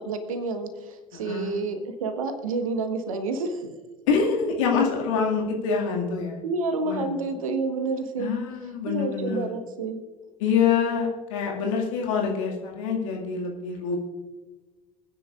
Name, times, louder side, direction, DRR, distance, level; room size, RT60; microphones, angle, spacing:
voice 1, 0.0-3.7 6.4-8.3 8.9-10.1, right 3 dB, 70° right, 8 dB, 1.3 m, -29 dB
voice 2, 1.1-1.6 4.1-6.4 6.8-7.1 8.2-9.5 10.4-14.0, left 6 dB, 65° left, 0 dB, 2.1 m, -26 dB
26.0 x 9.8 x 2.5 m, 1.3 s
figure-of-eight pair, 60°, 18 cm